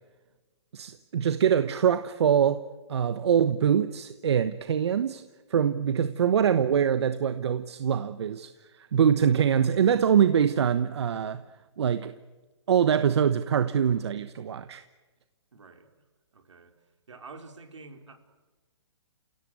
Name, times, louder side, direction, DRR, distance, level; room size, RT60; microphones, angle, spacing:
voice 1, 0.7-2.6 2.9-5.2 5.5-8.5 8.9-11.4 11.8-12.1 12.7-14.8, right 8 dB, 65° right, 11 dB, 1.2 m, -24 dB
voice 2, 15.5-15.9 16.3-16.7 17.1-18.2, right 3 dB, 85° right, 5 dB, 4.4 m, -47 dB
30.0 x 17.5 x 8.2 m, 1.2 s
hypercardioid pair, 150°, 15 cm